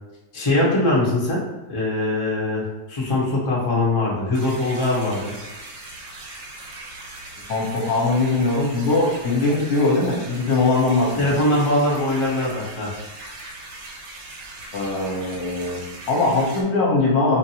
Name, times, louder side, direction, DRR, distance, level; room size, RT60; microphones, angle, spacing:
voice 1, 0.3-1.4 1.7-5.3 11.2-12.9, left 1 dB, 30° left, -5 dB, 0.5 m, -22 dB
sound 1, 4.3-16.6, right 2 dB, 75° right, 1.4 m, -39 dB
voice 2, 7.5-11.3 14.7-17.4, left 3 dB, 60° left, -4 dB, 1.1 m, -21 dB
4.9 x 2.6 x 2.8 m, 1.1 s
omnidirectional pair, 2.2 m